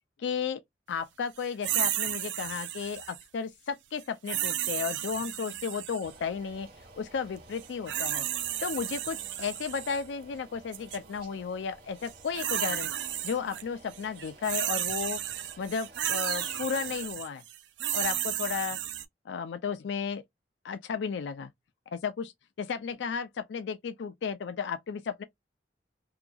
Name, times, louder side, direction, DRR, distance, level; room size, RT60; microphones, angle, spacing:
voice 1, 0.2-0.6 0.9-6.7 7.0-8.3 8.6-12.9 13.2-17.4 17.9-18.8 19.3-20.2 20.6-21.5 21.9-22.3 22.6-25.2, left 6 dB, 75° left, 0.4 m, -34 dB
sound 1, 1.6-3.2 4.3-6.1 7.6-10.0 10.7-11.0 12.0-13.6 13.9-19.1, right 12 dB, 80° right, 0.4 m, -33 dB
sound 2, 6.0-17.1, right 4 dB, 55° right, 1.2 m, -50 dB
2.7 x 2.3 x 2.4 m
head